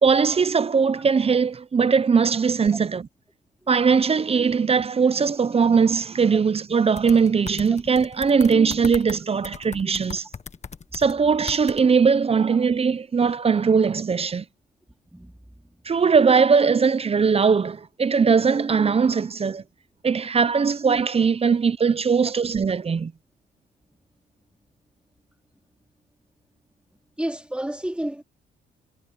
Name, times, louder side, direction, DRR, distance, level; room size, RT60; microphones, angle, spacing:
voice 1, 0.0-3.0 3.7-10.3 10.9-14.4 15.9-19.6 20.0-23.1, right 5 dB, 30° right, 0.7 m, -20 dB
sound 1, 7.0-9.2 9.4-11.1 11.5-11.8, left 6 dB, 35° left, 1.5 m, -38 dB
voice 2, 27.2-28.2, right 1 dB, 5° right, 4.3 m, -30 dB
cardioid pair, 90°, 20 cm